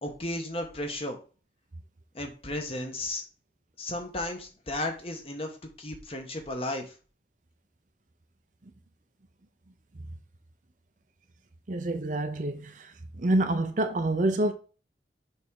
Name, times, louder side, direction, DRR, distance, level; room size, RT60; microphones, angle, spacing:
voice 1, 0.0-1.2 2.1-3.2 3.8-6.9, left 1 dB, 35° left, 1.2 m, -34 dB
voice 2, 11.7-12.9 13.2-14.5, right 1 dB, 45° right, 0.6 m, -27 dB
6.3 x 3.6 x 4.7 m
head